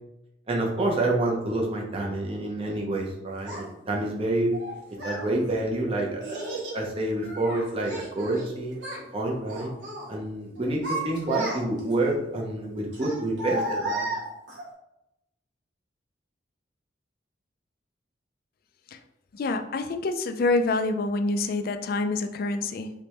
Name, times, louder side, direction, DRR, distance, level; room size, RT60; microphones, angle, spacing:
voice 1, 0.5-4.5 5.0-8.8 9.1-9.7 10.1-14.1, right 2 dB, 30° right, -1 dB, 0.7 m, -28 dB
Child speech kid speaking, 3.5-3.6 4.5-5.3 6.2-6.8 7.2-8.5 8.7-9.1 9.5-10.1 10.6-11.9 12.9-14.7, right 1 dB, 70° right, 1.0 m, -33 dB
voice 2, 19.3-22.9, left 3 dB, 50° left, 8 dB, 0.3 m, -27 dB
3.4 x 3.1 x 3.0 m, 0.87 s
head